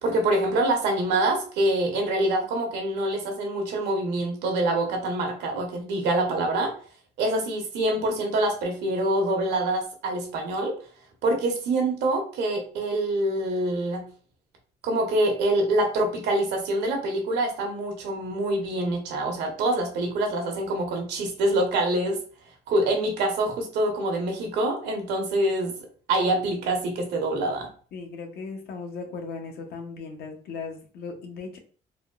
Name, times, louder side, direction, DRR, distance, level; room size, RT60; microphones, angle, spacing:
voice 1, 0.0-6.7 7.2-10.8 11.2-14.1 14.8-22.2 22.7-25.7 26.1-27.7, right 1 dB, 80° right, 3 dB, 1.0 m, -25 dB
voice 2, 27.9-31.6, left 4 dB, 65° left, 4 dB, 0.7 m, -37 dB
3.5 x 2.2 x 2.3 m, 0.42 s
cardioid pair, 110°, 17 cm